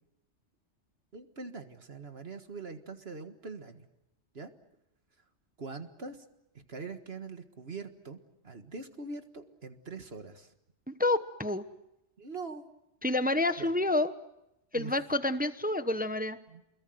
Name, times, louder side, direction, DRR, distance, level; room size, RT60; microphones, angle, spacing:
voice 1, 1.1-3.8 4.3-4.5 5.6-6.2 6.6-8.2 8.4-10.5 12.2-12.6 13.6-13.7 14.7-14.9 16.5-16.6, right 4 dB, 55° right, 7 dB, 1.9 m, -43 dB
voice 2, 10.9-11.6 13.0-14.1 14.7-16.4, left 2 dB, 10° right, 11 dB, 0.8 m, -28 dB
29.5 x 22.0 x 7.9 m, 0.89 s
omnidirectional pair, 1.2 m